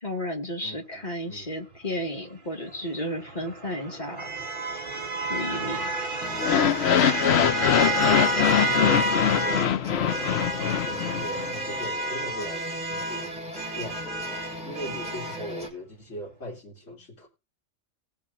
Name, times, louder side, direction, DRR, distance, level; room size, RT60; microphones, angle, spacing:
voice 1, 0.0-4.3 5.2-5.9, left 1 dB, 40° left, 2 dB, 2.1 m, -33 dB
voice 2, 0.6-1.5 7.5-8.1 8.5-9.7 10.1-13.3 13.8-14.3 14.6-17.3, left 1 dB, 85° left, -4 dB, 3.4 m, -40 dB
sound 1, 3.1-9.7 10.1-15.4, right 2 dB, 45° right, 2.0 m, -30 dB
sound 2, 6.2-15.7, left 1 dB, 5° right, 3.1 m, -38 dB
sound 3, 6.4-11.5, left 9 dB, 65° left, 0.9 m, -23 dB
19.5 x 7.2 x 2.7 m, 0.30 s
omnidirectional pair, 1.2 m